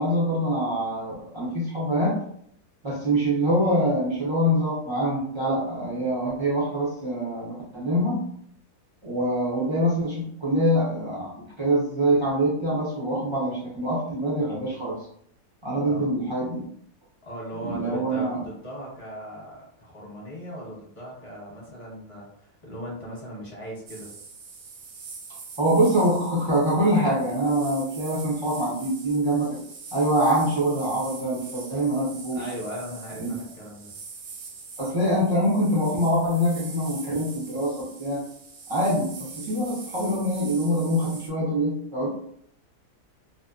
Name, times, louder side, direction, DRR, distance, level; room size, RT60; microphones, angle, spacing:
voice 1, 0.0-2.2 2.8-8.3 9.0-11.3 11.6-15.0 15.6-16.7 17.6-18.4 25.6-29.6 29.9-32.4 33.2-33.3 34.8-38.2 38.7-42.1, equal, 50° right, -6 dB, 0.3 m, -24 dB
voice 2, 15.8-16.1 17.2-24.1 32.3-33.9, right 1 dB, 25° left, -5 dB, 0.8 m, -38 dB
sound 1, 23.9-41.3, right 5 dB, 90° right, 1.1 m, -43 dB
2.7 x 2.1 x 2.4 m, 0.67 s
omnidirectional pair, 1.6 m